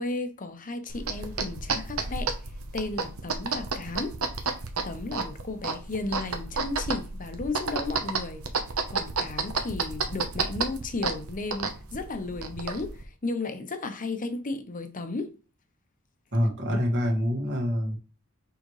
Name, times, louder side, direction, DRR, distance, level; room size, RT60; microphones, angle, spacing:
voice 1, 0.0-2.3 2.7-4.2 4.4-4.5 4.8-8.4 8.9-15.3, left 3 dB, 40° left, 0.9 m, -34 dB
sound 1, 0.9-13.0, right 4 dB, 80° right, 1.0 m, -32 dB
voice 2, 16.3-18.0, equal, 55° right, 2.0 m, -26 dB
6.5 x 4.9 x 3.2 m
head